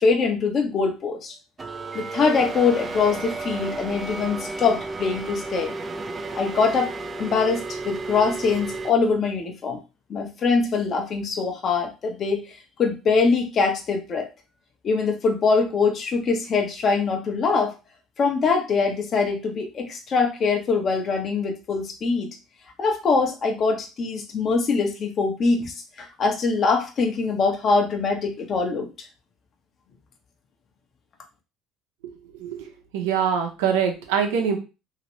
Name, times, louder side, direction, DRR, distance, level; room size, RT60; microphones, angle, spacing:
voice 1, 0.0-1.3 1.9-5.7 6.3-6.9 7.2-9.8 10.1-12.4 12.8-14.3 14.8-17.7 18.2-22.3 22.8-28.9, left 4 dB, 45° left, 3 dB, 0.9 m, -23 dB
sound 1, 1.6-8.9, right 3 dB, 25° right, 0.4 m, -33 dB
voice 2, 32.4-34.6, right 7 dB, 90° right, 3 dB, 0.8 m, -24 dB
2.9 x 2.9 x 3.0 m, 0.29 s
supercardioid pair, 85°, 0 cm